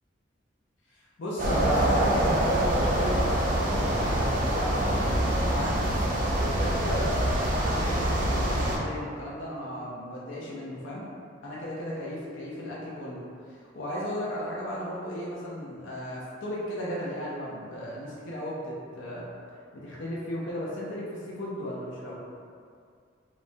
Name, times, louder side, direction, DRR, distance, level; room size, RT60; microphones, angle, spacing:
voice 1, 0.9-5.9 6.3-11.0 11.4-19.3 19.7-22.2, equal, 80° left, -5 dB, 0.5 m, -35 dB
sound 1, 1.4-8.8, right 1 dB, 45° right, 0.4 m, -25 dB
2.9 x 2.1 x 2.6 m, 2.2 s
head